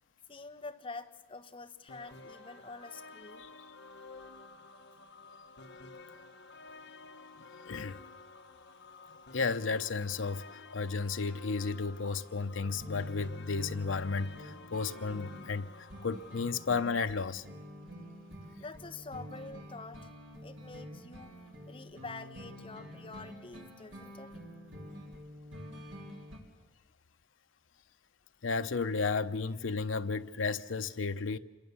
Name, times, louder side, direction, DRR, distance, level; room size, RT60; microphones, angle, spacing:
voice 1, 0.3-3.5 18.6-20.1 20.4-21.4 21.7-24.3, left 3 dB, 30° left, 1.1 m, -46 dB
sound 1, 1.9-16.7, left 3 dB, 60° left, 1.6 m, -51 dB
voice 2, 7.7-8.0 9.3-15.7 16.0-17.4 28.4-31.4, left 4 dB, 85° left, 0.7 m, -33 dB
sound 2, 12.6-26.4, equal, 75° right, 3.6 m, -48 dB
26.5 x 22.0 x 7.0 m
head